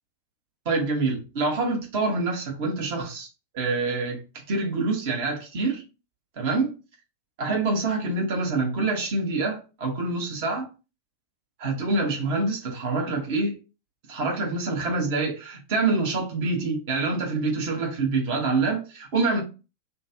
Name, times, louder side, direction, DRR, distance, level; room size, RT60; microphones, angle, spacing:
voice 1, 0.6-3.3 3.5-5.8 6.4-6.7 7.4-10.7 11.6-13.6 14.1-19.4, right 3 dB, 50° right, 1.2 m, -26 dB
3.0 x 2.4 x 2.9 m
figure-of-eight pair, 90°, 0 cm